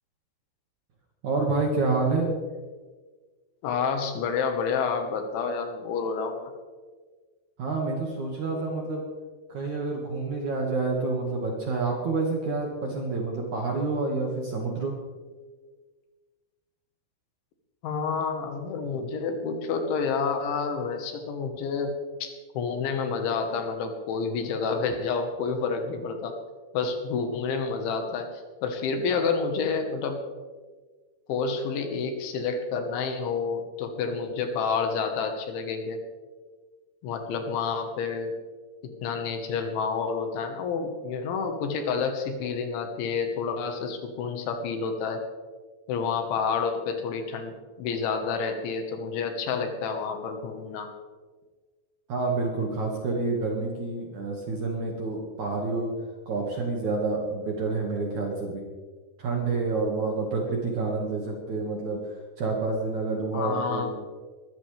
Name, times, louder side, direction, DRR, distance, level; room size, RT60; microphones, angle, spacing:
voice 1, 1.2-2.3 7.6-9.0 9.5-14.9 52.1-55.9 56.3-58.6 59.2-62.0 62.4-64.0, right 3 dB, 55° right, -1 dB, 2.4 m, -28 dB
voice 2, 3.6-6.5 17.8-26.4 26.7-30.2 31.3-36.0 37.0-38.4 39.0-45.2 45.9-50.9 63.3-63.9, left 5 dB, 75° left, 5 dB, 3.7 m, -29 dB
22.0 x 13.5 x 3.4 m, 1.4 s
omnidirectional pair, 5.5 m